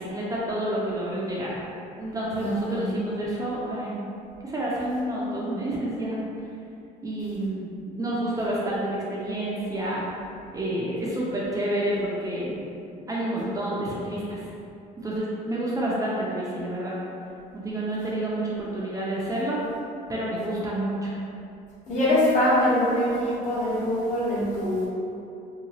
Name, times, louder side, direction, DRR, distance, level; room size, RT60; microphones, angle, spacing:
voice 1, 0.0-1.6 2.0-4.0 4.4-6.2 7.0-10.0 10.5-12.6 13.1-14.4 15.0-17.0 17.5-19.6 20.1-21.2, right 1 dB, 20° right, -6 dB, 0.5 m, -29 dB
voice 2, 2.4-2.9 21.9-24.9, left 1 dB, 45° left, -8 dB, 1.0 m, -23 dB
2.8 x 2.3 x 2.8 m, 2.6 s
cardioid pair, 110°, 17 cm